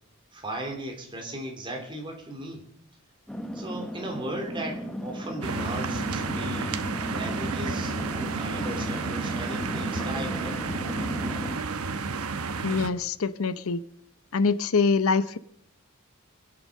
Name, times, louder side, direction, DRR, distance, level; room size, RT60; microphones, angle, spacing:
voice 1, 0.3-2.6 3.5-6.8 7.1-10.7, right 1 dB, 20° right, 2 dB, 3.1 m, -37 dB
sound 1, 3.3-11.6, equal, 5° left, 0.8 m, -35 dB
sound 2, 5.4-12.9, right 4 dB, 90° right, 1.0 m, -31 dB
voice 2, 12.6-13.8 14.3-15.4, left 4 dB, 80° left, 14 dB, 0.7 m, -24 dB
21.5 x 8.9 x 6.5 m, 0.70 s
head